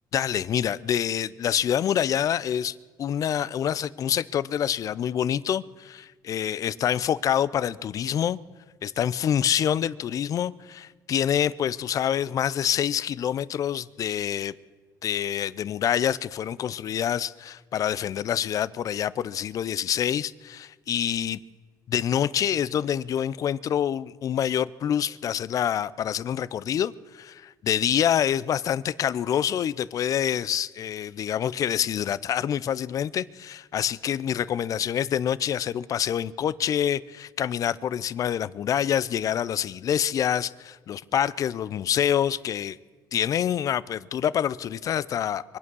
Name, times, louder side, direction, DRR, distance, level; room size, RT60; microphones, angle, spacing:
voice 1, 0.1-8.4 8.8-14.5 15.0-21.4 21.9-42.8 43.1-45.6, left 9 dB, 45° left, 0.5 m, -26 dB
24.5 x 8.5 x 6.2 m
cardioid pair, 125°, 8 cm